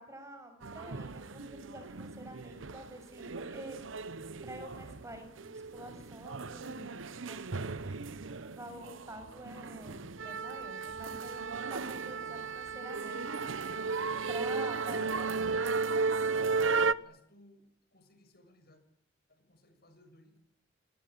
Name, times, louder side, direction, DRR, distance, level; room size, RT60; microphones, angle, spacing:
voice 1, 0.0-3.8 4.4-8.0 8.4-13.4 14.3-15.8, equal, 15° right, 7 dB, 6.8 m, -48 dB
sound 1, 0.6-16.9, right 4 dB, 85° right, 1.0 m, -35 dB
voice 2, 17.0-18.8 19.3-20.4, left 1 dB, 50° left, 9 dB, 7.0 m, -61 dB
27.0 x 20.0 x 9.4 m, 0.72 s
head